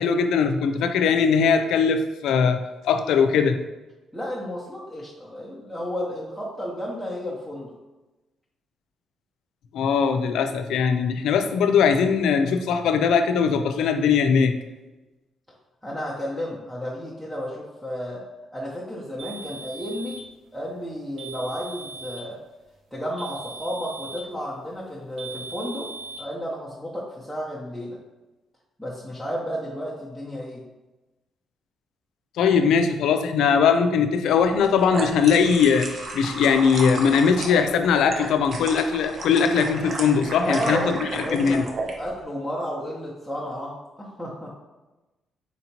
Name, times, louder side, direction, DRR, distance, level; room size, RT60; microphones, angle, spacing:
voice 1, 0.0-2.6 2.8-3.6 9.7-14.5 32.4-41.6, left 6 dB, 80° left, 8 dB, 0.3 m, -20 dB
voice 2, 4.1-7.7 15.8-18.2 18.5-20.2 20.5-22.4 22.9-25.9 26.2-28.0 28.8-30.6 40.3-41.6 42.0-44.5, equal, 5° right, -5 dB, 0.7 m, -32 dB
sound 1, 19.2-20.3 21.2-22.3 23.2-24.3 25.2-26.2, right 3 dB, 80° right, 0.8 m, -39 dB
sound 2, 34.5-41.9, right 2 dB, 50° right, 0.6 m, -33 dB
4.3 x 2.8 x 2.8 m, 1.1 s
cardioid pair, 90°, 0 cm